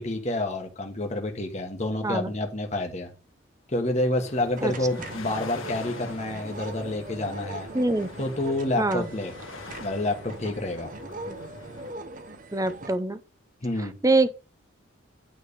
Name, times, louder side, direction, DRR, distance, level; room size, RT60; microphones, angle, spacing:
voice 1, 0.0-3.1 3.7-7.7 8.2-9.3 9.8-10.9 13.6-13.9, left 1 dB, 35° left, 1.2 m, -28 dB
sound 1, 4.2-11.9, left 3 dB, 85° left, 1.6 m, -43 dB
sound 2, 4.6-13.0, right 2 dB, 40° right, 0.8 m, -41 dB
voice 2, 7.7-8.1 8.8-9.1 11.3-11.4 12.5-13.2 13.8-14.3, right 2 dB, 15° right, 0.6 m, -24 dB
9.2 x 3.4 x 6.7 m
head